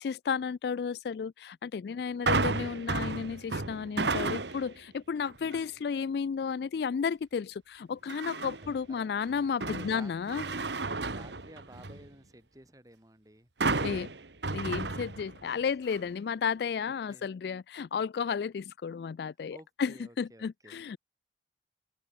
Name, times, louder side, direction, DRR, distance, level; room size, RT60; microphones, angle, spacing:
voice 1, 0.0-10.4 13.8-14.1 14.5-21.0, left 6 dB, 65° left, 0.3 m, -33 dB
voice 2, 1.9-2.4 8.6-9.1 9.4-10.8 11.0-14.2 15.4-15.6 17.1-17.3 19.5-20.8, right 1 dB, 20° right, 6.4 m, -54 dB
sound 1, 2.3-4.8 5.3-5.6 8.1-8.8 9.2-12.1 13.6-15.5 15.9-16.0, right 3 dB, 80° right, 1.9 m, -32 dB
open air
head